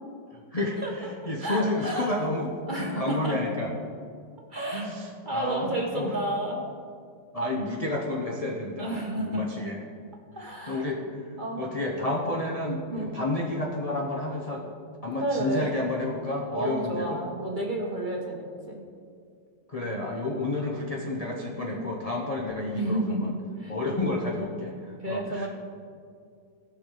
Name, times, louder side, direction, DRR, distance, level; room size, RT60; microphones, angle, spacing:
voice 1, 0.3-2.5 2.7-3.7 4.7-6.2 7.3-9.8 10.4-11.0 11.6-14.6 15.0-17.2 19.7-23.3 23.7-25.5, left 2 dB, 50° left, -1 dB, 0.4 m, -30 dB
voice 2, 1.4-2.3 2.7-3.4 4.5-4.9 5.2-6.6 8.8-9.4 10.3-10.8 11.4-11.6 12.9-13.1 15.2-15.7 16.5-18.8 22.7-23.7 25.0-25.5, right 1 dB, 30° right, -1 dB, 1.0 m, -31 dB
17.0 x 6.0 x 3.8 m, 2.2 s
omnidirectional pair, 2.1 m